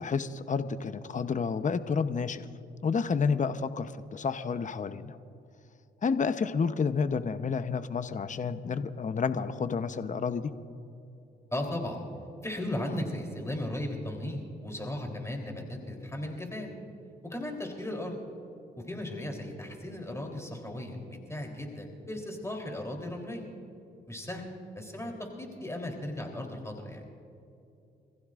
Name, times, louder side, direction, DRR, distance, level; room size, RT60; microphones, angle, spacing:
voice 1, 0.0-2.5 2.8-5.2 6.0-10.5, left 5 dB, 40° left, 11 dB, 0.8 m, -30 dB
voice 2, 11.5-12.0 12.4-16.7 17.2-18.2 18.9-23.4 24.1-24.4 24.8-27.0, left 1 dB, 15° left, 1 dB, 3.5 m, -36 dB
26.5 x 15.5 x 2.5 m, 2.7 s
supercardioid pair, 60°, 20 cm